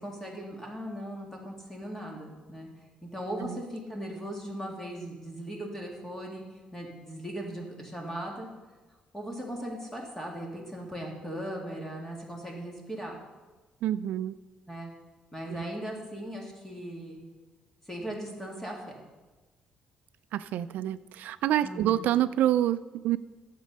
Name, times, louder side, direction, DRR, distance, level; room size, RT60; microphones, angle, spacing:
voice 1, 0.0-2.7 3.0-6.4 6.7-8.5 9.1-13.2 14.7-14.9 15.3-17.2 17.9-18.8 21.6-22.0, right 1 dB, 10° left, 0 dB, 2.1 m, -38 dB
voice 2, 13.8-14.4 15.5-15.6 20.3-23.2, right 12 dB, 75° right, 14 dB, 0.3 m, -27 dB
11.0 x 7.4 x 5.4 m, 1.2 s
cardioid pair, 145°, 3 cm